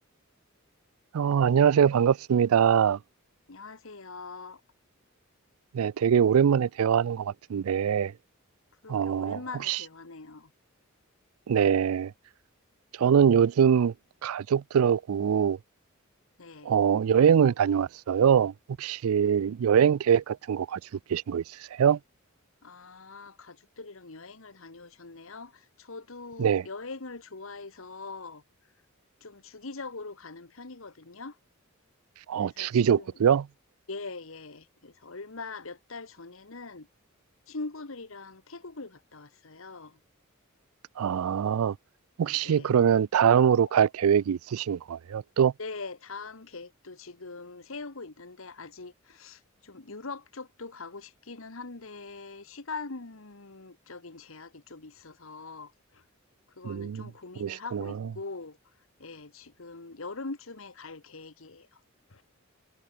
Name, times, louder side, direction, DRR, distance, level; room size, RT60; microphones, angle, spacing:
voice 1, 1.1-3.0 5.7-8.1 8.9-9.4 9.7-9.8 11.5-12.1 13.0-13.9 14.2-15.6 16.6-20.8 21.1-21.4 21.7-22.0 26.4-26.6 32.3-33.5 41.0-41.8 42.2-45.5 56.6-57.1 57.4-57.9, right 8 dB, 90° right, 0.4 m, -23 dB
voice 2, 3.5-4.6 8.8-10.5 16.4-16.7 22.6-28.4 29.2-31.4 32.4-33.1 33.9-36.9 37.5-40.0 42.2-42.8 43.6-43.7 45.6-56.0 56.6-58.6 59.0-61.8 62.1-62.2, left 3 dB, 70° left, 1.5 m, -42 dB
head